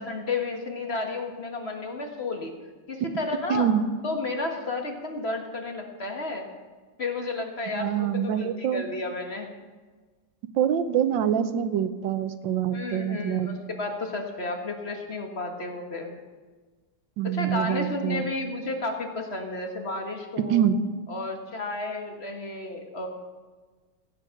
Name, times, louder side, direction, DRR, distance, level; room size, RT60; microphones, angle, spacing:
voice 1, 0.0-2.5 2.9-3.7 4.0-6.5 7.0-9.5 12.7-16.1 17.2-20.6 21.1-23.1, left 3 dB, 35° left, 3 dB, 1.5 m, -32 dB
voice 2, 3.5-3.8 7.7-8.9 10.6-13.5 17.2-18.3 20.4-20.8, right 9 dB, 90° right, 11 dB, 1.5 m, -25 dB
17.0 x 8.5 x 6.3 m, 1.4 s
omnidirectional pair, 2.0 m